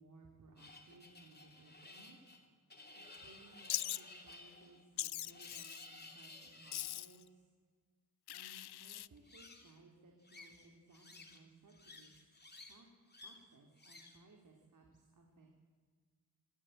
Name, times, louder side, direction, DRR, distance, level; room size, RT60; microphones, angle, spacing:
voice 1, 0.0-2.2 2.9-7.5 8.3-12.3 12.7-12.9 13.2-15.6, right 2 dB, 50° right, 1 dB, 3.0 m, -62 dB
sound 1, 0.6-7.0 9.2-9.8 10.2-11.4 11.7-12.8 13.1-13.4 13.8-14.2, left 2 dB, 25° left, 2.7 m, -56 dB
Wild animals, 3.7-4.0 5.0-5.9 6.7-7.2 8.3-9.1, left 13 dB, 90° left, 0.6 m, -41 dB
26.5 x 13.5 x 9.0 m, 1.5 s
wide cardioid pair, 110°, 38 cm